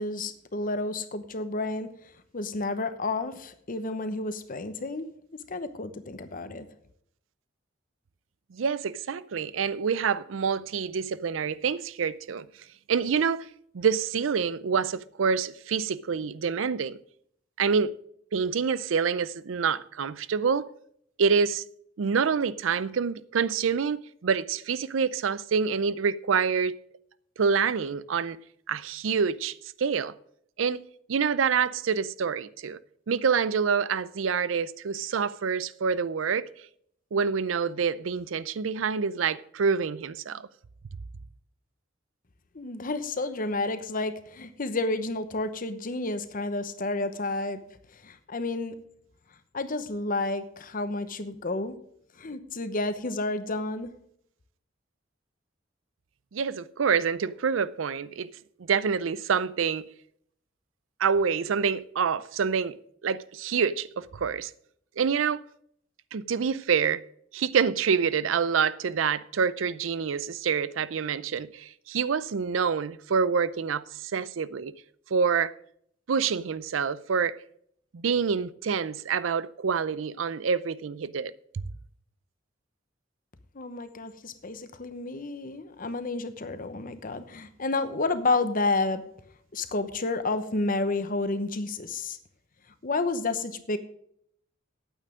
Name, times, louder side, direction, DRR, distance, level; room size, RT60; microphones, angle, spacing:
voice 1, 0.0-1.9 2.3-5.1 5.5-6.6 42.5-47.6 47.9-48.8 49.5-51.7 52.2-53.9 83.5-89.0 89.5-92.2 92.8-93.8, left 2 dB, 45° left, 0.9 m, -30 dB
voice 2, 8.5-12.5 12.9-13.5 13.7-17.0 17.6-17.9 18.3-20.7 21.2-21.6 22.0-26.8 27.4-28.4 28.7-30.1 30.6-30.8 31.1-32.8 33.1-36.5 37.1-40.5 56.3-58.3 58.7-59.8 61.0-62.8 63.0-64.5 65.0-65.4 66.1-67.0 67.3-74.7 75.1-75.5 76.1-77.4 77.9-81.6, right 6 dB, 85° right, 0.5 m, -27 dB
9.2 x 8.9 x 6.3 m
head